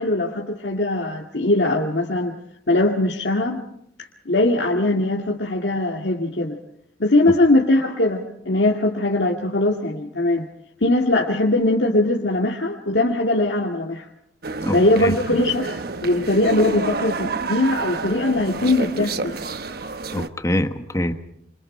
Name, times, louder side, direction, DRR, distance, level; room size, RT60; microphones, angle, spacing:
voice 1, 0.0-2.4 2.7-3.6 4.3-6.6 7.0-10.5 10.8-14.1 14.7-19.4, left 2 dB, 70° left, -1 dB, 2.1 m, -21 dB
sound 1, 14.4-20.3, right 3 dB, 55° right, 1.1 m, -29 dB
voice 2, 14.6-15.1 20.1-21.1, left 1 dB, 20° left, 8 dB, 1.4 m, -24 dB
28.0 x 27.0 x 4.3 m, 0.73 s
head